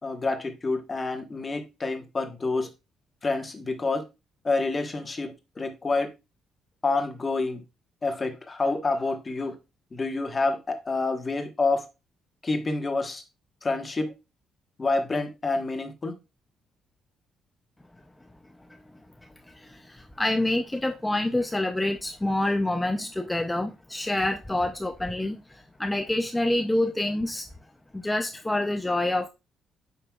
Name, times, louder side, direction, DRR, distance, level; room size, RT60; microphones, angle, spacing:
voice 1, 0.0-2.7 3.2-4.0 4.4-6.1 6.8-7.6 8.0-9.5 9.9-11.9 12.4-13.2 13.6-14.1 14.8-16.1, left 3 dB, 25° left, 1.2 m, -28 dB
voice 2, 19.5-27.5 27.9-29.3, left 1 dB, 10° left, 0.5 m, -27 dB
8.8 x 5.5 x 2.3 m
cardioid pair, 125°, 0 cm